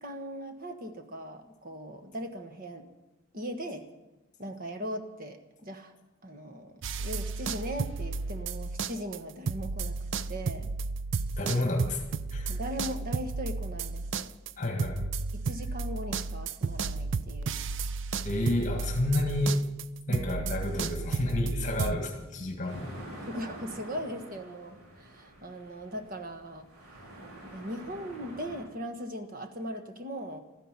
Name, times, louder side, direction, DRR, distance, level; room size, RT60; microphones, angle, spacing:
voice 1, 0.0-2.9 3.3-3.8 4.4-6.0 6.2-10.7 12.5-14.3 15.3-17.5 20.1-20.5 23.3-27.1 27.5-30.4, equal, 40° right, 6 dB, 1.4 m, -39 dB
sound 1, 6.8-9.2 9.5-22.0, right 4 dB, 55° right, 0.5 m, -33 dB
voice 2, 11.4-12.0 12.3-12.6 14.6-15.1 18.2-19.6 20.1-22.9, left 1 dB, 35° left, 3 dB, 1.8 m, -30 dB
sound 2, 22.7-28.6, right 1 dB, 85° right, 4.7 m, -47 dB
13.5 x 10.0 x 9.7 m, 1.1 s
head